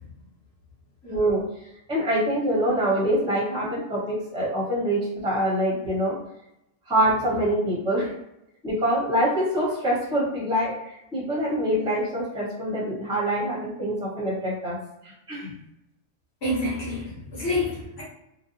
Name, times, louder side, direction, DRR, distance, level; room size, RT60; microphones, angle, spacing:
voice 1, 1.0-1.4 1.9-6.2 6.9-8.1 8.6-14.8 15.0-15.6 17.5-17.6, right 1 dB, 5° right, -6 dB, 0.8 m, -25 dB
voice 2, 16.4-18.0, left 1 dB, 50° left, -5 dB, 1.1 m, -28 dB
2.7 x 2.2 x 2.6 m, 0.87 s
omnidirectional pair, 1.5 m